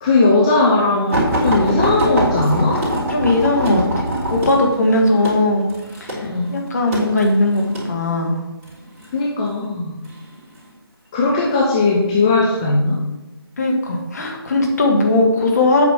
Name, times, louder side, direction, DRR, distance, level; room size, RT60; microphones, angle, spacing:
voice 1, 0.0-2.8 6.2-6.5 9.1-10.0 11.1-13.0, left 3 dB, 15° left, -3 dB, 0.7 m, -18 dB
sound 1, 1.1-7.9 8.7-9.1 10.0-10.7 11.4-11.6 12.0-12.1, right 1 dB, 35° right, 3.1 m, -23 dB
voice 2, 3.1-4.0 4.3-5.7 6.0-8.4 13.6-15.9, left 2 dB, 40° left, 1 dB, 1.7 m, -18 dB
8.3 x 5.0 x 6.1 m, 1.1 s
figure-of-eight pair, 155°, 13 cm